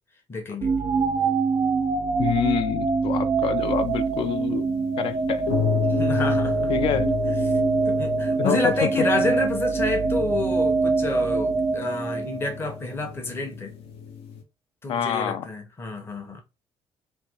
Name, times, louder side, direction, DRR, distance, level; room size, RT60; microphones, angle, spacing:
voice 1, 0.3-0.7 6.0-6.7 7.2-7.3 7.9-13.7 14.8-16.4, left 2 dB, 25° left, 0.8 m, -29 dB
sound 1, 0.6-12.7, right 4 dB, 45° right, 0.4 m, -24 dB
voice 2, 2.2-4.7 5.0-5.4 6.7-7.1 8.4-8.9 9.2-9.3 14.9-15.5, left 9 dB, 60° left, 0.4 m, -26 dB
sound 2, 3.6-14.4, left 7 dB, 90° left, 0.7 m, -32 dB
3.2 x 2.7 x 2.8 m
cardioid pair, 150°, 10 cm